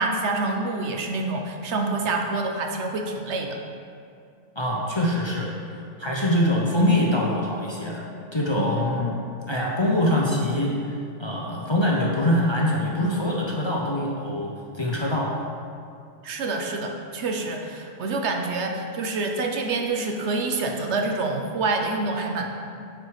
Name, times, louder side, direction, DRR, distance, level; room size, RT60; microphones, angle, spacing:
voice 1, 0.0-3.6 8.6-8.7 16.2-22.5, right 3 dB, 65° right, 2 dB, 1.0 m, -27 dB
voice 2, 4.6-9.1 9.5-10.8 11.2-15.3, left 1 dB, 25° left, -4 dB, 0.7 m, -24 dB
9.0 x 4.7 x 4.8 m, 2.4 s
omnidirectional pair, 1.3 m